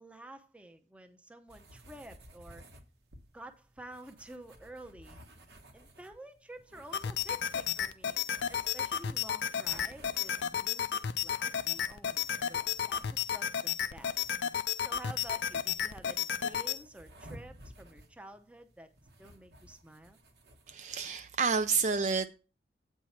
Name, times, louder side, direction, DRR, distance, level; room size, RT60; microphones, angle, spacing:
voice 1, 0.0-2.6 3.3-5.2 5.7-8.2 8.5-18.9 19.2-20.2, right 1 dB, 5° right, 0.7 m, -51 dB
sound 1, 1.5-21.1, right 1 dB, 70° right, 1.1 m, -56 dB
sound 2, 6.9-16.8, left 8 dB, 80° left, 0.4 m, -33 dB
voice 2, 20.7-22.3, right 5 dB, 40° right, 0.4 m, -29 dB
8.4 x 4.6 x 5.6 m
head